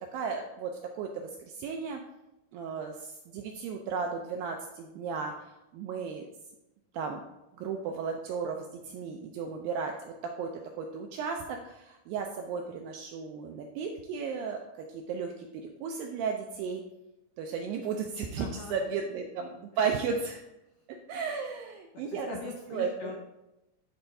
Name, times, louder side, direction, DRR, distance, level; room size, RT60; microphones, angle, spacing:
voice 1, 0.1-2.0 2.5-6.3 6.9-7.2 7.5-10.5 10.8-15.5 15.8-16.8 17.4-20.4 20.9-22.3 22.7-23.1, right 5 dB, 85° right, 3 dB, 2.0 m, -35 dB
voice 2, 18.4-18.8 21.9-23.2, left 4 dB, 90° left, 1 dB, 1.8 m, -41 dB
11.0 x 4.3 x 2.7 m, 0.93 s
omnidirectional pair, 4.6 m